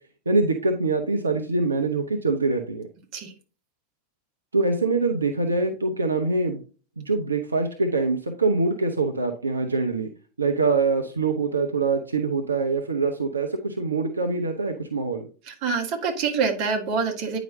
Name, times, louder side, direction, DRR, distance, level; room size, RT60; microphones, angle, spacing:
voice 1, 0.3-2.9 4.5-6.6 7.0-10.1 10.4-15.3, right 3 dB, 75° right, 4 dB, 0.7 m, -24 dB
voice 2, 15.5-17.4, right 5 dB, 40° right, 2 dB, 1.6 m, -26 dB
9.4 x 5.0 x 2.7 m, 0.38 s
figure-of-eight pair, 90°, 0 cm